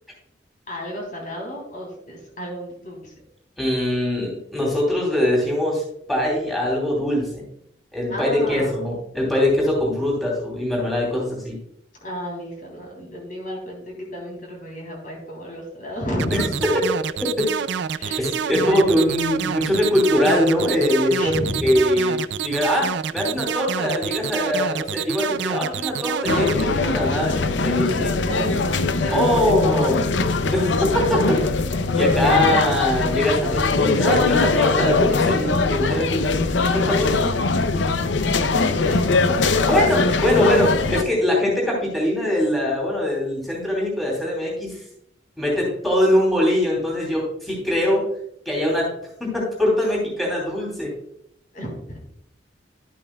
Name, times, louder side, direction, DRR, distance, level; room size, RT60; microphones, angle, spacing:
voice 1, 0.7-3.1 8.1-8.8 12.0-16.6 18.0-18.9 20.9-21.8 28.2-30.0 38.4-39.9 51.5-52.0, equal, 45° left, -1 dB, 3.4 m, -32 dB
voice 2, 3.6-5.8 6.1-7.5 7.9-11.5 16.3-16.4 17.4-17.5 18.2-21.3 21.6-22.2 22.4-28.1 29.1-30.1 30.5-31.4 31.9-36.4 36.6-37.3 39.6-44.8 45.4-48.0 48.4-48.9 49.2-50.9, left 1 dB, ahead, -4 dB, 3.0 m, -22 dB
sound 1, 16.2-26.6, right 7 dB, 65° right, 0.4 m, -27 dB
sound 2, 26.3-41.0, left 3 dB, 70° left, 0.6 m, -21 dB
11.5 x 8.6 x 2.3 m, 0.73 s
head